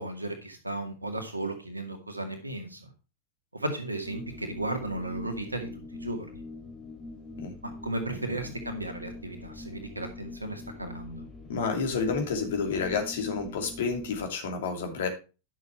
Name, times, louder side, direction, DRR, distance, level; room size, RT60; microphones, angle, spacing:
voice 1, 0.0-2.9 3.5-6.3 7.6-11.2, right 2 dB, 80° right, 5 dB, 2.0 m, -35 dB
sound 1, 4.0-14.3, left 2 dB, 10° left, 2.7 m, -44 dB
voice 2, 11.5-15.1, left 5 dB, 60° left, 3 dB, 2.7 m, -30 dB
10.5 x 6.5 x 4.5 m, 0.33 s
figure-of-eight pair, 90°, 0 cm